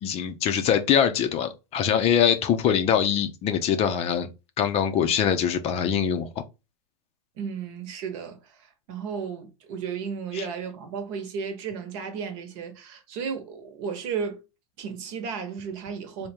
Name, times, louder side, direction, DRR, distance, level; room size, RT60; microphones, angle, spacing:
voice 1, 0.0-4.3 4.6-6.3 10.3-10.5, left 8 dB, 35° left, 0.6 m, -23 dB
voice 2, 7.4-14.4 14.8-16.3, right 6 dB, 55° right, 1.0 m, -34 dB
3.6 x 2.2 x 4.2 m
hypercardioid pair, 115°, 18 cm